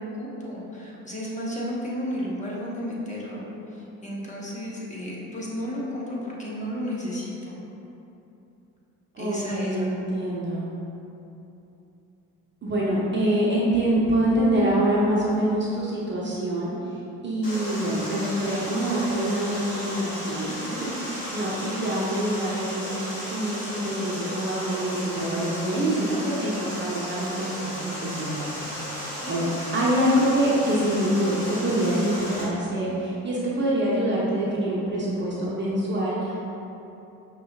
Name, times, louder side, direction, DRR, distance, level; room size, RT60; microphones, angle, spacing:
voice 1, 0.0-3.4 3.7-7.6 9.2-9.9 21.4-21.5 29.2-29.4, equal, 15° left, -6 dB, 0.8 m, -33 dB
voice 2, 9.1-10.7 12.6-16.8 17.2-22.9 23.3-36.4, right 1 dB, 25° right, -6 dB, 0.7 m, -25 dB
Water, 17.4-32.4, equal, 85° left, 0.8 m, -35 dB
5.4 x 2.8 x 2.7 m, 2.9 s
figure-of-eight pair, 45°, 45 cm